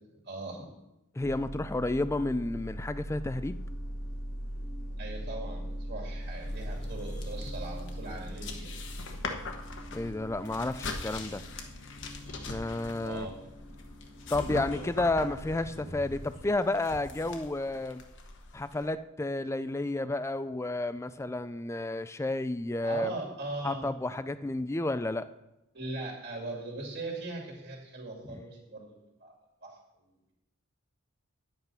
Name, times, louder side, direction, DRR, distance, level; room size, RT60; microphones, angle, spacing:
voice 1, 0.2-0.7 5.0-8.7 13.0-13.4 22.8-23.9 25.7-29.3 29.6-29.8, right 2 dB, 45° right, -2 dB, 2.3 m, -39 dB
sound 1, 1.2-16.5, equal, 75° left, 2.4 m, -41 dB
voice 2, 1.2-3.6 9.9-11.4 12.5-13.3 14.3-18.0 18.5-23.1 23.6-25.3 28.2-28.4, left 2 dB, 15° left, 13 dB, 0.3 m, -31 dB
sound 2, 6.2-18.9, left 3 dB, 55° left, 1.1 m, -42 dB
10.0 x 8.1 x 5.4 m, 0.93 s
head